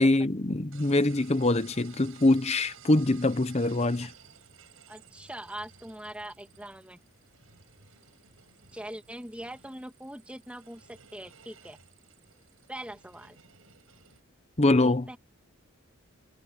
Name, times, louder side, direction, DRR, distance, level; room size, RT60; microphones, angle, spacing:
voice 1, 0.0-4.1 14.6-15.0, left 2 dB, 30° left, 0.9 m, -24 dB
sound 1, 0.7-14.2, right 7 dB, 85° right, 5.8 m, -55 dB
voice 2, 4.9-7.0 8.7-11.8 12.7-13.4 14.8-15.2, right 1 dB, 5° right, 2.0 m, -42 dB
head